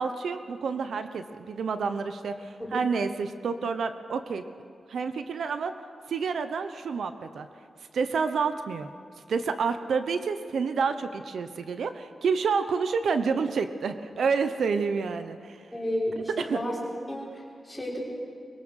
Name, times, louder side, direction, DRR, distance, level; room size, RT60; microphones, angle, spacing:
voice 1, 0.0-4.5 4.9-5.7 6.1-7.5 7.9-8.9 9.3-15.6 16.4-16.6, right 5 dB, 85° right, 9 dB, 1.0 m, -29 dB
voice 2, 15.7-16.7 17.1-18.2, left 1 dB, 5° left, -5 dB, 5.5 m, -32 dB
23.5 x 22.5 x 6.5 m, 2.4 s
wide cardioid pair, 160°, 0 cm